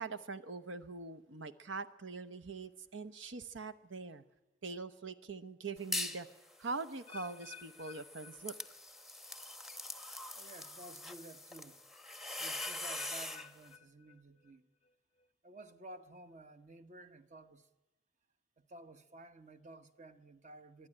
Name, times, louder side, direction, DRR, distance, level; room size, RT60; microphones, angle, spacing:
voice 1, 0.0-4.2 4.6-6.3 6.6-8.5, right 4 dB, 85° right, 0.9 m, -43 dB
sound 1, 5.8-6.3 6.7-13.5, left 2 dB, ahead, 0.9 m, -43 dB
sound 2, 7.1-9.1 9.3-9.8 10.4-10.5 12.5-14.5 14.8-15.3 15.9-16.0, left 7 dB, 30° left, 0.6 m, -54 dB
voice 2, 10.3-11.8 12.4-14.7 15.4-17.7 18.6-20.9, right 1 dB, 40° right, 1.0 m, -53 dB
23.0 x 12.0 x 10.0 m
head